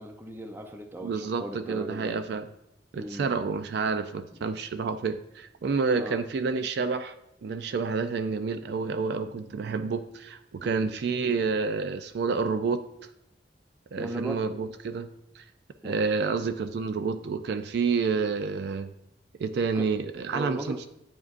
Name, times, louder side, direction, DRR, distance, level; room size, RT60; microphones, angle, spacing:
voice 1, 0.0-2.2 2.9-3.4 4.3-4.4 6.0-6.2 10.6-11.0 14.0-14.5 15.8-16.0 19.7-19.9 20.3-20.8, right 1 dB, 10° right, 4 dB, 0.5 m, -37 dB
voice 2, 1.0-2.5 2.9-7.1 7.4-12.8 13.9-15.1 15.4-15.5 15.8-18.9 19.4-20.9, right 4 dB, 65° right, 10 dB, 0.3 m, -29 dB
9.3 x 4.9 x 2.5 m, 0.79 s
head